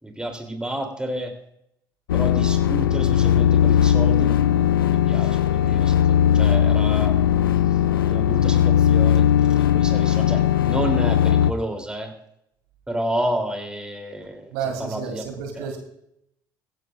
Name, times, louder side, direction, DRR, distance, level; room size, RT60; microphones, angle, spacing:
voice 1, 0.0-1.3 2.1-7.2 7.7-9.3 9.6-12.1 12.9-15.7, right 1 dB, 10° right, 4 dB, 3.0 m, -30 dB
sound 1, 2.1-11.5, left 10 dB, 85° left, 0.4 m, -18 dB
voice 2, 14.5-15.8, right 7 dB, 75° right, 4 dB, 3.0 m, -30 dB
18.0 x 16.0 x 2.5 m, 0.77 s
hypercardioid pair, 60°, 11 cm